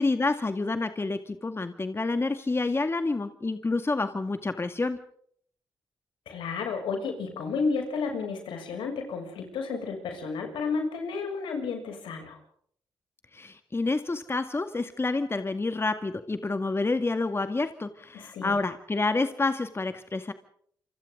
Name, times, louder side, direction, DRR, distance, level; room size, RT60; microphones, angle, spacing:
voice 1, 0.0-5.0 13.3-20.3, left 3 dB, 30° left, 8 dB, 2.0 m, -28 dB
voice 2, 6.2-12.4 18.1-18.6, left 4 dB, 80° left, 3 dB, 6.7 m, -32 dB
28.5 x 25.5 x 3.8 m, 0.63 s
supercardioid pair, 50°, 9 cm